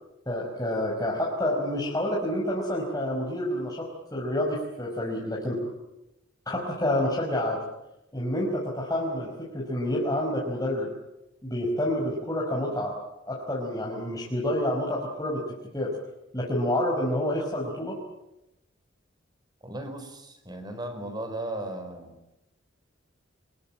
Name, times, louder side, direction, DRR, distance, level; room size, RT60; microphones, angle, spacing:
voice 1, 0.2-5.6 6.5-7.6 8.1-10.9 11.4-12.9 13.3-15.4 15.7-15.9 16.3-18.0, left 1 dB, 20° left, -4 dB, 4.9 m, -28 dB
voice 2, 19.6-22.2, right 1 dB, 20° right, 7 dB, 4.6 m, -36 dB
25.5 x 21.5 x 8.9 m, 0.89 s
head